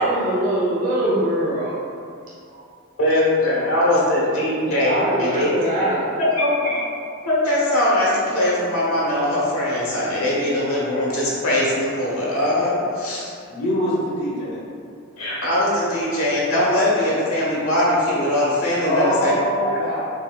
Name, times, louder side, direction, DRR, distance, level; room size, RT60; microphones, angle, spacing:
voice 1, 0.0-1.7 2.5-2.6 4.6-6.0, right 1 dB, 40° right, -8 dB, 0.5 m, -23 dB
voice 2, 3.0-5.9 6.2-6.8 7.2-13.3 15.2-19.3 19.6-20.0, left 1 dB, 85° left, -7 dB, 1.1 m, -21 dB
voice 3, 13.5-14.6 18.8-20.0, equal, 45° left, -9 dB, 0.7 m, -23 dB
4.0 x 2.6 x 2.2 m, 2.4 s
head